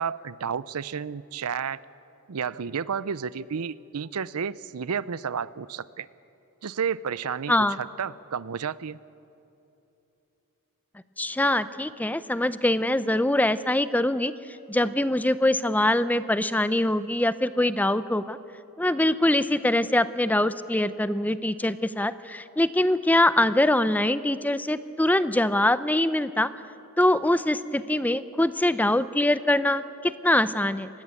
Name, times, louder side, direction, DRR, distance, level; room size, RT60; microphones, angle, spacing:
voice 1, 0.0-1.8 2.3-6.1 6.6-9.0, right 6 dB, 80° right, 19 dB, 0.6 m, -31 dB
voice 2, 11.2-14.3 14.7-18.4 18.8-26.5 27.0-30.9, left 1 dB, 5° left, 14 dB, 0.5 m, -23 dB
26.0 x 20.0 x 8.4 m, 2.9 s
head